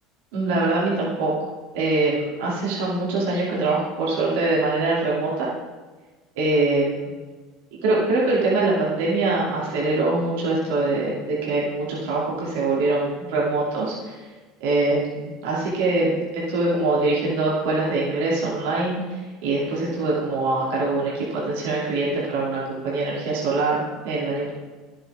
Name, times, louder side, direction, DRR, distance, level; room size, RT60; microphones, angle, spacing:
voice 1, 0.3-1.3 1.7-5.5 6.4-7.1 7.8-14.2 14.6-24.5, right 2 dB, 80° right, -6 dB, 2.4 m, -23 dB
11.0 x 7.6 x 3.5 m, 1.3 s
supercardioid pair, 105°, 0 cm